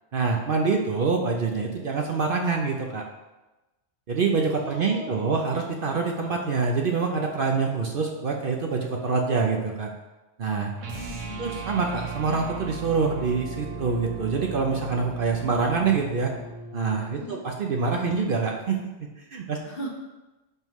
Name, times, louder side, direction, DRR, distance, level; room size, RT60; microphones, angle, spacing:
voice 1, 0.1-3.0 4.1-9.9 10.4-10.7 11.4-16.3 16.7-19.6, right 4 dB, 55° right, 1 dB, 0.8 m, -26 dB
voice 2, 4.5-5.4 10.8-11.6 17.1-17.4 19.6-19.9, right 1 dB, 50° left, -1 dB, 1.4 m, -39 dB
sound 1, 10.8-17.2, right 5 dB, 80° right, 1.2 m, -37 dB
11.0 x 3.7 x 3.1 m, 1.1 s
omnidirectional pair, 1.3 m